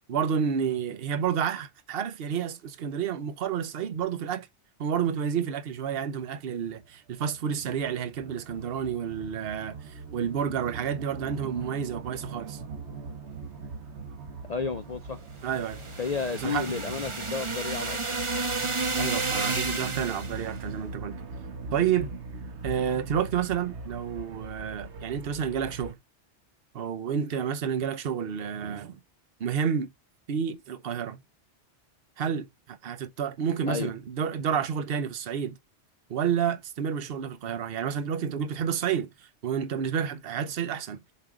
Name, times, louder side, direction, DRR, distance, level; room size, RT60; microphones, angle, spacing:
voice 1, 0.1-4.5 4.8-12.7 15.4-15.8 16.3-16.8 19.0-21.2 21.7-22.1 22.6-26.0 26.7-29.0 29.4-29.9 30.3-31.2 32.2-35.6 36.1-41.0, right 8 dB, 60° right, 1.0 m, -30 dB
sound 1, 6.7-25.9, right 3 dB, 75° right, 1.4 m, -41 dB
voice 2, 14.5-15.2 16.0-18.2 33.7-33.9, left 5 dB, 45° left, 0.6 m, -32 dB
sound 2, 15.5-20.5, right 3 dB, 30° right, 0.9 m, -31 dB
7.6 x 4.1 x 4.9 m
omnidirectional pair, 1.1 m